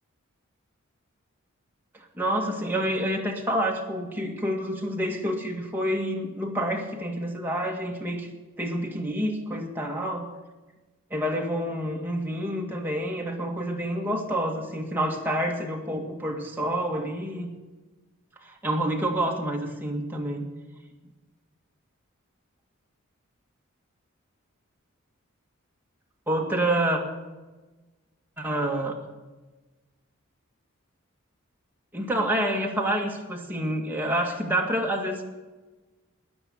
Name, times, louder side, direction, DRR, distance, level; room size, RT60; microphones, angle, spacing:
voice 1, 1.9-8.3 8.6-10.3 11.1-17.5 18.4-20.5 26.3-27.0 28.4-29.0 31.9-35.2, right 1 dB, 10° right, 0 dB, 1.9 m, -28 dB
14.0 x 10.0 x 8.6 m, 1.2 s
head